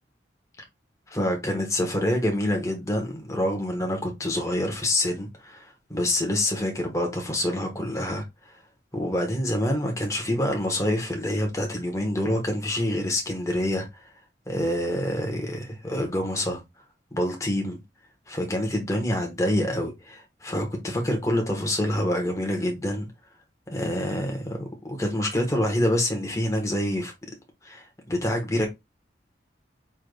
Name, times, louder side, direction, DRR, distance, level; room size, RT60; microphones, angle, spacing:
voice 1, 1.1-8.2 8.9-14.1 14.5-16.6 17.1-17.8 18.3-23.1 23.7-27.1 27.6-28.7, left 1 dB, 20° left, 1.1 m, -26 dB
4.8 x 3.4 x 2.3 m
head